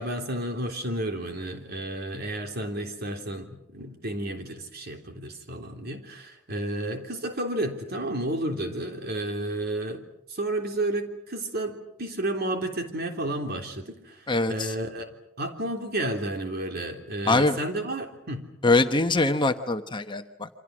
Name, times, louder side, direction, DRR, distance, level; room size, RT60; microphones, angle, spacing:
voice 1, 0.0-10.0 10.3-18.5, right 1 dB, 50° right, 4 dB, 3.5 m, -32 dB
voice 2, 14.3-14.7 17.3-17.6 18.6-20.5, left 2 dB, 25° left, 7 dB, 1.1 m, -23 dB
28.5 x 25.5 x 6.3 m, 0.80 s
head